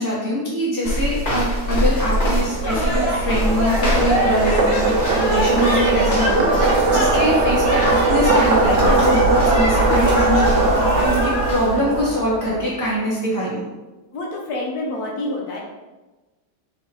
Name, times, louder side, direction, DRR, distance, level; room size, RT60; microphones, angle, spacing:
voice 1, 0.0-13.6, equal, 15° right, -7 dB, 0.6 m, -23 dB
sound 1, 0.8-12.0, equal, 40° left, 1.5 m, -25 dB
sound 2, 2.4-12.9, right 3 dB, 80° right, 1.4 m, -20 dB
sound 3, 2.6-11.5, equal, 20° left, 1.5 m, -25 dB
voice 2, 14.1-15.6, left 2 dB, 65° left, -2 dB, 1.3 m, -28 dB
3.9 x 3.0 x 4.3 m, 1.1 s
omnidirectional pair, 1.9 m